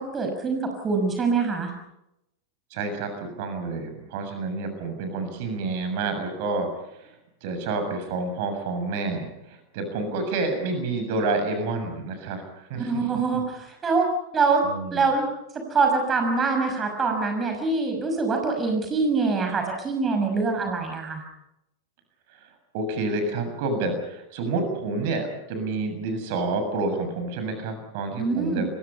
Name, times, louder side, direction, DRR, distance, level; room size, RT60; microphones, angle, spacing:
voice 1, 0.0-1.7 12.7-14.1 14.3-14.6 14.9-15.3 15.7-21.2 28.2-28.7, right 4 dB, 20° right, 4 dB, 6.1 m, -24 dB
voice 2, 2.7-6.7 7.4-13.0 14.6-15.1 22.7-28.7, right 3 dB, 50° right, 7 dB, 7.1 m, -29 dB
29.5 x 24.5 x 5.6 m, 0.86 s
figure-of-eight pair, 90°, 0 cm